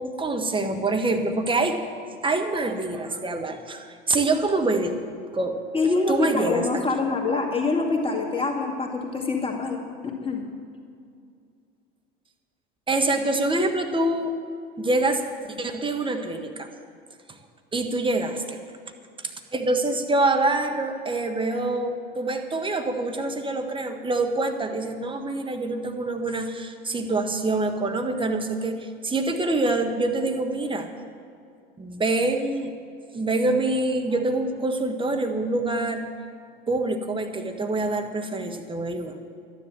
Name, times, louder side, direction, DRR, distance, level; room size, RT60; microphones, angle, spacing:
voice 1, 0.0-1.8 2.2-4.9 5.3-5.6 6.1-6.7 12.9-14.3 14.8-16.7 17.3-17.4 17.7-18.6 19.2-30.9 31.8-32.7 33.1-36.1 36.7-39.1, right 2 dB, 15° right, 5 dB, 1.5 m, -25 dB
voice 2, 5.7-10.5, left 3 dB, 20° left, 0 dB, 2.3 m, -25 dB
12.5 x 10.5 x 7.6 m, 2.3 s
hypercardioid pair, 75°, 30 cm